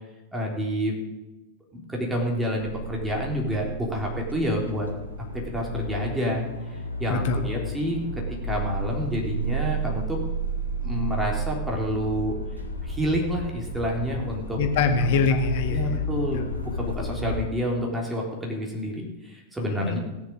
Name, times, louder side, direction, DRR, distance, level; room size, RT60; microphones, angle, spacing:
voice 1, 0.3-1.0 1.7-4.9 5.3-6.5 6.7-8.0 8.4-10.2 10.8-12.3 12.8-14.6 15.3-15.4 15.7-20.0, equal, 10° right, -1 dB, 3.5 m, -28 dB
sound 1, 2.6-17.4, right 1 dB, 85° left, 1.8 m, -32 dB
voice 2, 14.6-15.9 16.3-16.5 19.7-20.0, left 4 dB, 50° left, 5 dB, 1.7 m, -24 dB
17.0 x 7.0 x 6.7 m, 1.1 s
figure-of-eight pair, 90°, 0 cm